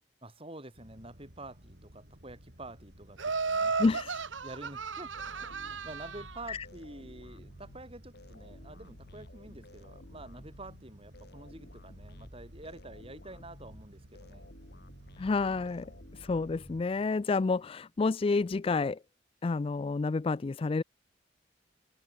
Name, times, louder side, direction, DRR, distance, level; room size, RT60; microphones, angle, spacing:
voice 1, 0.2-3.8 4.4-5.1 5.4-14.5, right 2 dB, 30° right, 6.0 m, -48 dB
sound 1, 0.7-16.8, equal, 65° right, 6.1 m, -56 dB
Laughter, 3.2-6.4, right 4 dB, 90° right, 1.4 m, -34 dB
voice 2, 3.8-4.2 6.5-6.6 15.2-19.0 19.4-20.8, left 3 dB, 30° left, 0.3 m, -29 dB
sound 2, 5.1-17.4, left 1 dB, 60° left, 4.1 m, -53 dB
head